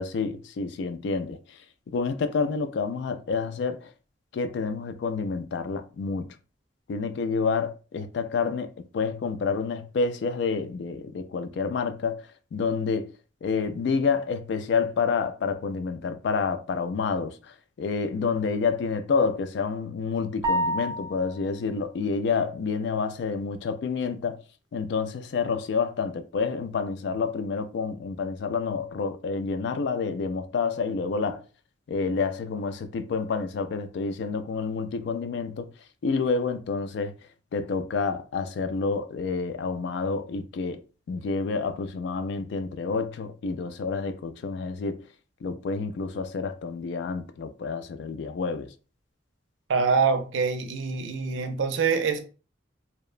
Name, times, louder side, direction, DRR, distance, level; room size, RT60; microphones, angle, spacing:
voice 1, 0.0-1.6 1.9-3.9 4.3-6.3 6.9-12.2 12.5-13.1 13.4-24.4 24.7-31.4 31.9-35.7 36.0-37.1 37.5-40.8 41.1-45.0 45.4-48.7, left 5 dB, 65° left, 0.3 m, -28 dB
sound 1, 20.4-21.5, right 1 dB, 20° right, 0.5 m, -28 dB
voice 2, 49.7-52.2, right 5 dB, 85° right, 0.4 m, -25 dB
2.9 x 2.0 x 2.4 m
head